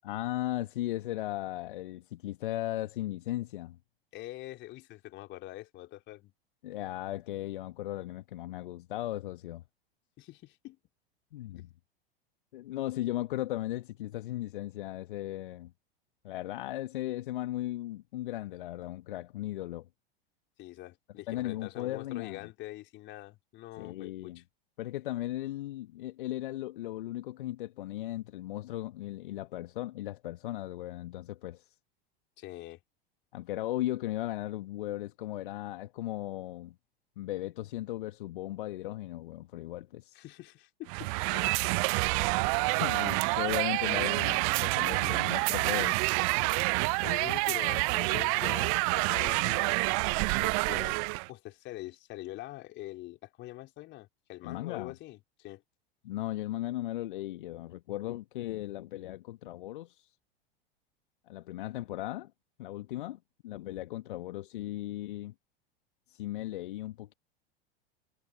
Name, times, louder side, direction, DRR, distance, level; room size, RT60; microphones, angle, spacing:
voice 1, 0.0-3.8 6.6-9.6 11.3-11.7 12.5-15.7 16.2-19.9 21.3-22.4 23.8-24.4 24.8-31.8 33.3-36.7 37.2-40.2 42.6-46.0 54.4-54.9 56.0-60.1 61.3-62.3 62.6-65.3 66.1-67.1, left 15 dB, 60° left, 1.4 m, -37 dB
voice 2, 4.1-6.3 10.2-10.8 20.6-24.4 32.4-32.8 40.1-41.8 42.0-42.3 46.4-46.7 47.0-49.8 50.4-51.0 51.3-55.6, left 17 dB, 40° left, 3.7 m, -44 dB
sound 1, 40.9-51.3, right 34 dB, 40° right, 0.4 m, -28 dB
figure-of-eight pair, 85°, 29 cm